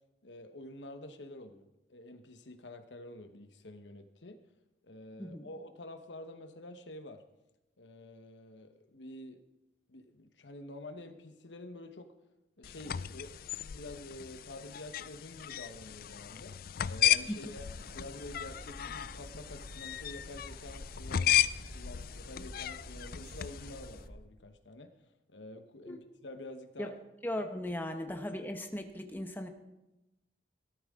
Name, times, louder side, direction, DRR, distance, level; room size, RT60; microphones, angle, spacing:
voice 1, 0.2-4.4 4.8-7.2 7.8-9.4 9.9-12.1 12.6-16.6 16.8-17.7 17.9-21.4 21.7-24.9 25.3-26.9, left 1 dB, 80° left, 7 dB, 1.1 m, -48 dB
sound 1, 12.6-24.0, left 11 dB, 55° left, 0.4 m, -35 dB
sound 2, 17.6-24.1, equal, 60° right, 5.9 m, -49 dB
voice 2, 27.2-29.5, left 1 dB, 10° left, 5 dB, 1.0 m, -37 dB
17.5 x 13.0 x 3.7 m, 0.97 s
head